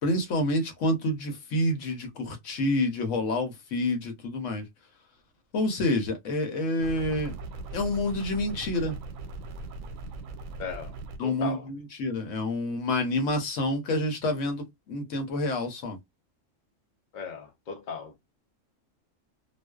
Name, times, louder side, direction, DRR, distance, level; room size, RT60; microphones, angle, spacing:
voice 1, 0.0-4.7 5.5-7.3 7.7-9.0 11.2-16.0, left 1 dB, 70° left, 1.1 m, -28 dB
sound 1, 6.8-11.2, right 3 dB, 90° right, 1.0 m, -39 dB
voice 2, 10.6-11.0 11.2-11.7 17.1-18.2, left 6 dB, 50° left, 0.6 m, -37 dB
2.4 x 2.2 x 2.2 m
omnidirectional pair, 1.4 m